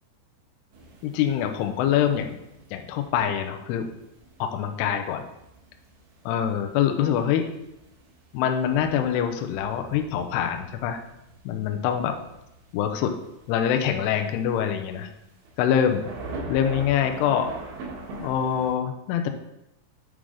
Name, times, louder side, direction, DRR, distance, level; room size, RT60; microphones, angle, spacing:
sound 1, 0.7-18.7, right 2 dB, 75° right, 4.0 m, -44 dB
voice 1, 1.0-2.3 2.7-3.9 4.4-5.2 6.3-7.5 8.3-11.0 11.5-12.1 12.7-13.1 13.5-15.1 15.6-16.1 16.5-17.5 18.2-19.4, left 9 dB, 90° left, 5 dB, 2.4 m, -24 dB
8.6 x 4.8 x 3.8 m, 0.87 s
omnidirectional pair, 5.3 m